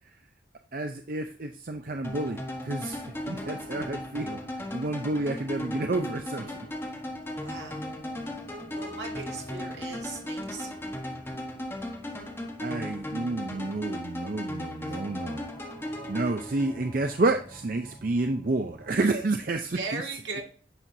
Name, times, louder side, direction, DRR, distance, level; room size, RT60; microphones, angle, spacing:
voice 1, 0.7-2.4 2.6-6.4 12.6-15.5 16.1-20.0, right 2 dB, 45° right, 6 dB, 0.5 m, -30 dB
sound 1, 1.7-18.9, equal, 35° left, 3.2 m, -51 dB
sound 2, 2.0-17.1, left 1 dB, 15° left, 1.2 m, -36 dB
voice 2, 7.4-7.8 8.7-10.8 14.8-15.0 19.7-20.4, right 4 dB, 75° right, 1 dB, 2.1 m, -38 dB
9.9 x 6.1 x 2.7 m, 0.43 s
head